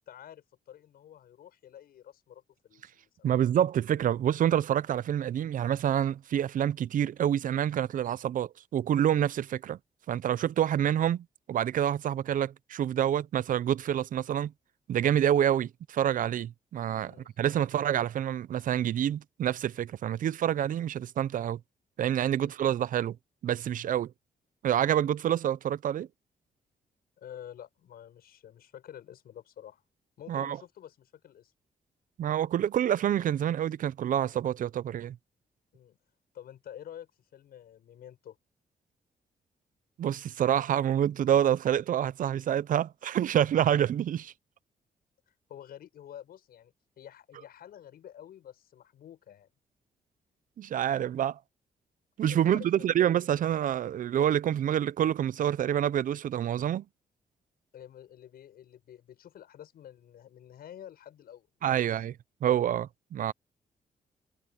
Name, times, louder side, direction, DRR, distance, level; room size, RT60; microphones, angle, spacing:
voice 1, 0.1-3.4 17.0-17.3 22.4-22.5 27.2-29.8 30.2-31.5 35.7-36.0 36.3-38.4 45.3-49.5 52.3-52.9 57.7-62.0, left 10 dB, 85° left, 6.9 m, -49 dB
voice 2, 3.2-9.8 10.1-14.5 14.9-21.6 22.0-23.2 23.4-24.1 24.6-26.1 30.3-30.6 32.2-35.2 40.0-44.3 50.6-51.4 52.2-56.8 61.6-62.1 62.4-63.3, right 10 dB, 60° right, 0.5 m, -27 dB
cardioid pair, 125°, 15 cm